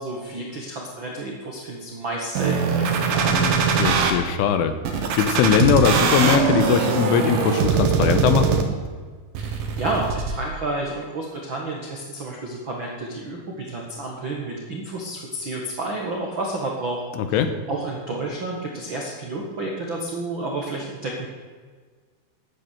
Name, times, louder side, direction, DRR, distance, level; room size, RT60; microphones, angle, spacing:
voice 1, 0.0-3.4 9.4-17.0 17.3-17.4 17.7-21.3, right 2 dB, 85° right, -1 dB, 1.0 m, -30 dB
sound 1, 2.4-4.1 4.9-8.9 9.4-10.3, right 5 dB, 65° right, 2.3 m, -22 dB
voice 2, 3.8-4.8 5.2-8.6 17.2-17.5, left 7 dB, 85° left, 9 dB, 3.5 m, -20 dB
12.5 x 9.2 x 8.4 m, 1.5 s
omnidirectional pair, 5.5 m